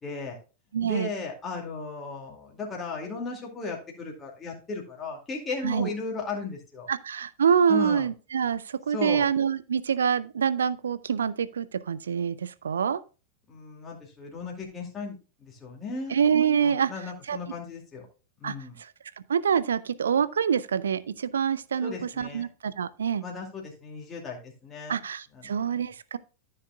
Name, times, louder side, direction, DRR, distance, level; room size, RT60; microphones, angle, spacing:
voice 1, 0.0-0.4 0.8-6.9 7.7-8.1 8.9-9.3 13.5-16.2 16.6-18.1 18.4-18.8 21.8-22.5 23.2-25.0 25.3-25.6, left 4 dB, 20° left, 2.3 m, -36 dB
voice 2, 0.7-1.1 5.6-5.9 6.9-13.0 16.1-16.9 17.3-17.4 18.4-18.9 19.3-23.2 24.9-26.2, right 7 dB, 70° right, 0.5 m, -26 dB
14.0 x 6.5 x 2.3 m
figure-of-eight pair, 90°, 0 cm